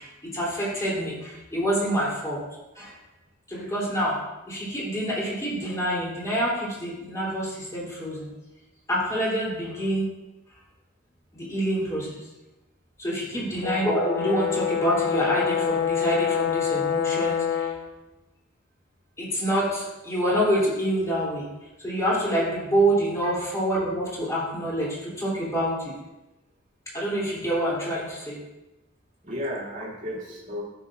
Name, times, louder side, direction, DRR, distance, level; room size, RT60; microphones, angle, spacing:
voice 1, 0.0-2.4 2.7-2.9 3.5-4.2 4.5-8.3 8.9-10.1 11.3-12.1 13.0-17.7 19.2-21.5 21.8-25.9 26.9-28.4, right 1 dB, 15° left, -6 dB, 3.2 m, -26 dB
voice 2, 13.3-13.6 23.2-23.4 29.2-30.6, equal, 40° right, -4 dB, 2.4 m, -34 dB
Brass instrument, 13.6-17.9, left 8 dB, 60° left, 1.2 m, -26 dB
14.5 x 6.6 x 2.5 m, 1.0 s
head